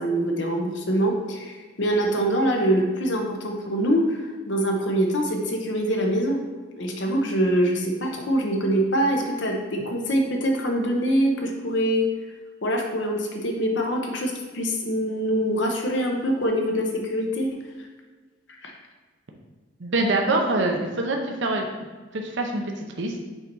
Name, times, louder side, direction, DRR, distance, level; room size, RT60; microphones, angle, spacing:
voice 1, 0.0-6.4 6.8-12.0 12.6-17.5 17.8-17.9 18.6-18.7, right 1 dB, 65° left, 1 dB, 0.9 m, -24 dB
voice 2, 19.8-21.7 22.1-23.2, right 2 dB, 65° right, 2 dB, 0.7 m, -25 dB
5.7 x 4.0 x 4.6 m, 1.4 s
head